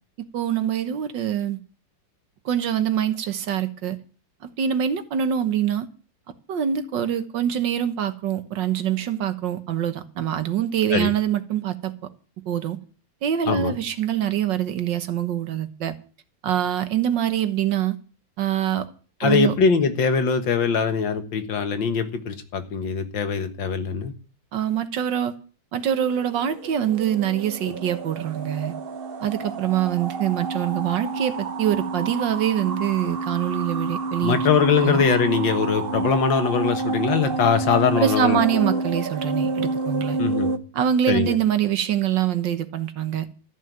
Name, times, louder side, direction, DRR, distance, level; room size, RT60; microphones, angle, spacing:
voice 1, 0.2-1.6 2.5-4.0 4.4-5.9 6.5-11.9 12.5-12.8 13.2-16.0 16.4-18.0 18.4-18.9 19.2-19.5 24.5-25.4 25.7-28.8 29.2-34.4 34.8-35.0 38.0-40.2 40.7-43.3, right 10 dB, 75° right, 1.8 m, -24 dB
voice 2, 19.2-24.1 34.2-38.4 38.7-38.8 40.2-40.5 41.1-41.4, left 6 dB, 85° left, 2.2 m, -22 dB
sound 1, 26.0-40.6, right 3 dB, 45° right, 0.8 m, -28 dB
13.5 x 6.6 x 9.2 m
omnidirectional pair, 2.0 m